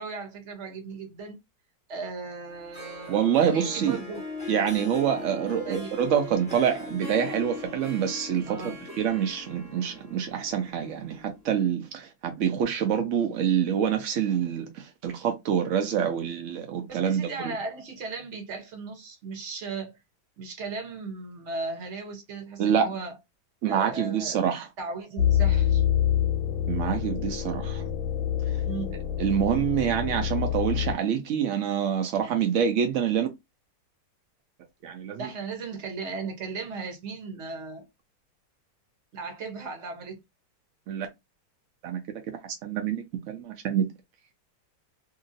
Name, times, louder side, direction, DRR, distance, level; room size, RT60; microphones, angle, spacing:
voice 1, 0.0-1.4 1.9-4.2 5.6-5.9 8.5-8.8 16.8-20.0 20.4-23.2 23.6-24.4 24.8-25.8 28.7-29.0 35.2-37.9 39.1-40.2, right 4 dB, 50° right, 1.0 m, -36 dB
Harp, 2.5-11.5, left 3 dB, 5° left, 0.9 m, -40 dB
voice 2, 3.1-4.0 4.5-17.6 22.6-23.0 23.6-24.7 26.7-27.8 29.2-33.3 34.8-35.3 40.9-41.1 41.8-42.0 42.3-43.8, right 8 dB, 80° right, 0.6 m, -26 dB
sound 1, 25.2-30.9, left 10 dB, 75° left, 1.1 m, -26 dB
2.8 x 2.6 x 2.6 m
omnidirectional pair, 1.9 m